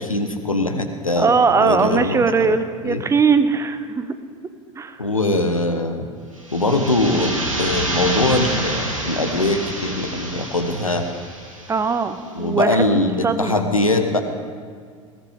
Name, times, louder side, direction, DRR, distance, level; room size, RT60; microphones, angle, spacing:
voice 1, 0.0-2.2 2.8-3.0 5.0-6.1 6.5-11.1 12.3-14.2, left 2 dB, 85° left, 6 dB, 1.3 m, -21 dB
voice 2, 1.2-4.1 4.8-5.0 11.7-12.8 13.2-13.6, right 5 dB, 15° right, 10 dB, 0.9 m, -20 dB
sound 1, 6.4-12.0, right 1 dB, 80° right, 2.5 m, -28 dB
21.0 x 17.0 x 3.6 m, 2.1 s
figure-of-eight pair, 80°, 17 cm